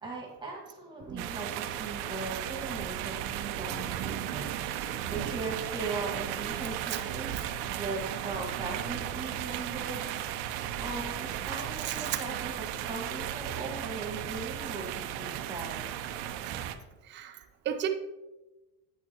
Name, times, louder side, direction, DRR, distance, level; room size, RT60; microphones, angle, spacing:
voice 1, 0.0-10.2 10.8-15.9, right 3 dB, 10° right, -1 dB, 1.8 m, -39 dB
sound 1, 1.2-16.7, right 11 dB, 70° right, 0.8 m, -35 dB
voice 2, 17.0-17.9, right 9 dB, 25° right, 5 dB, 0.6 m, -36 dB
8.5 x 8.2 x 3.0 m, 1.1 s
cardioid pair, 150°, 44 cm